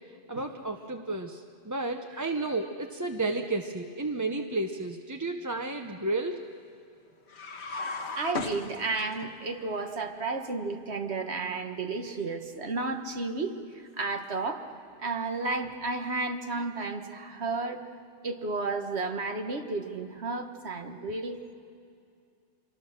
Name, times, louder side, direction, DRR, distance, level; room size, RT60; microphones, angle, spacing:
voice 1, 0.3-6.4, right 2 dB, 20° right, 4 dB, 0.7 m, -32 dB
sound 1, 7.3-9.3, left 4 dB, 70° left, 1.5 m, -36 dB
voice 2, 8.1-14.7 15.0-17.9 18.2-21.4, right 3 dB, 70° right, 5 dB, 1.8 m, -32 dB
26.5 x 22.5 x 6.7 m, 2.5 s
omnidirectional pair, 1.2 m